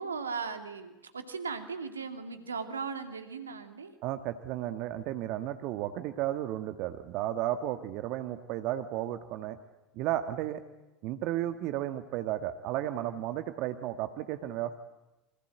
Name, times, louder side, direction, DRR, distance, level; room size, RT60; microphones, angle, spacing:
voice 1, 0.0-3.9, right 5 dB, 85° right, 7 dB, 2.6 m, -37 dB
voice 2, 4.0-9.6 9.9-10.6 11.0-14.8, right 13 dB, 55° right, 9 dB, 1.6 m, -33 dB
29.5 x 25.5 x 7.9 m, 1.0 s
figure-of-eight pair, 75°, 0 cm